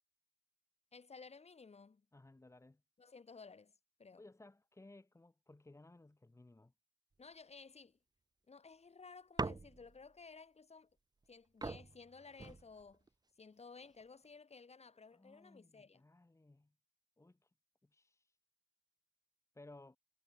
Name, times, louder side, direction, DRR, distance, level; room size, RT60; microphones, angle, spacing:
voice 1, 0.9-2.0 3.0-3.7 4.0-4.2 7.2-8.0 8.5-10.9 11.3-13.1 13.4-16.0, left 4 dB, 30° left, 6.7 m, -56 dB
voice 2, 2.1-2.8 4.2-6.7 15.1-16.7 17.2-17.5 17.8-18.4 19.5-20.0, left 2 dB, 15° left, 3.3 m, -60 dB
sound 1, 9.4-10.1 11.2-11.3 11.6-13.1 13.8-14.3, right 3 dB, 20° right, 1.4 m, -43 dB
cardioid pair, 90°, 20 cm